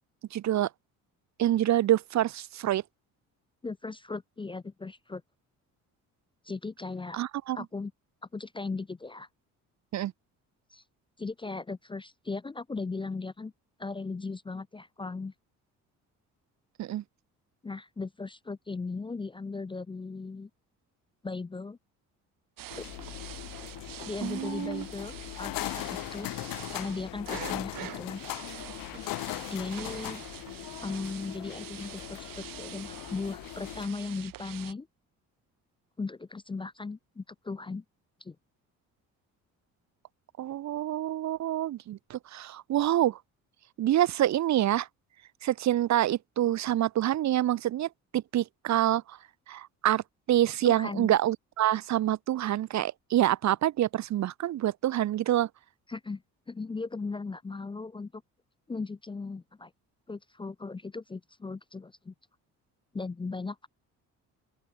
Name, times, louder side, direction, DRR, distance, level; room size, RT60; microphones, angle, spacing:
voice 1, 0.3-0.7 1.4-2.8 7.1-7.6 9.9-10.1 16.8-17.0 24.2-24.8 40.4-43.2 43.8-44.9 45.4-49.2 49.5-55.5, right 13 dB, 55° right, 0.7 m, -27 dB
voice 2, 3.6-5.2 6.4-7.2 7.5-7.9 8.3-9.3 10.7-10.8 11.2-13.5 13.8-15.3 17.6-20.5 21.2-21.8 22.8-22.9 24.1-26.3 26.7-28.2 29.5-30.2 30.8-34.9 36.0-37.8 38.2-38.4 50.6-51.1 55.9-56.2 56.5-58.2 58.7-59.7 60.1-62.1 62.9-63.7, left 4 dB, 15° left, 0.5 m, -37 dB
sound 1, 22.6-34.7, right 14 dB, 75° right, 3.7 m, -45 dB
sound 2, 22.7-33.9, left 19 dB, 75° left, 0.7 m, -39 dB
open air
cardioid pair, 85°, 34 cm